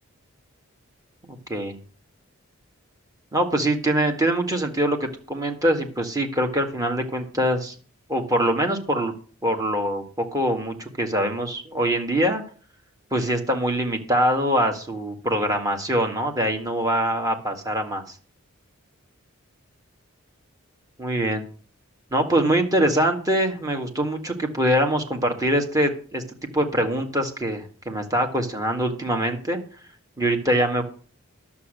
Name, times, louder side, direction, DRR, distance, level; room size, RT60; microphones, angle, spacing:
voice 1, 1.2-1.8 3.3-7.8 8.1-9.1 9.4-12.4 13.1-18.2 21.0-21.5 22.1-29.6 30.2-30.8, right 1 dB, 15° right, 4 dB, 1.8 m, -23 dB
11.0 x 7.3 x 6.5 m, 0.41 s
head